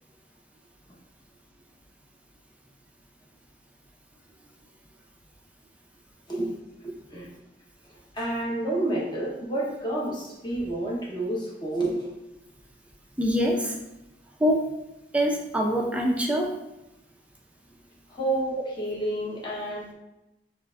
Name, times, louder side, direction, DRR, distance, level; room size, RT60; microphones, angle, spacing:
voice 1, 6.8-7.3 8.1-12.2 18.1-19.9, right 1 dB, 25° left, -5 dB, 1.0 m, -29 dB
voice 2, 13.2-13.8 14.4-14.6 15.1-16.5, equal, 5° right, -1 dB, 0.5 m, -24 dB
6.9 x 2.5 x 2.5 m, 0.94 s
head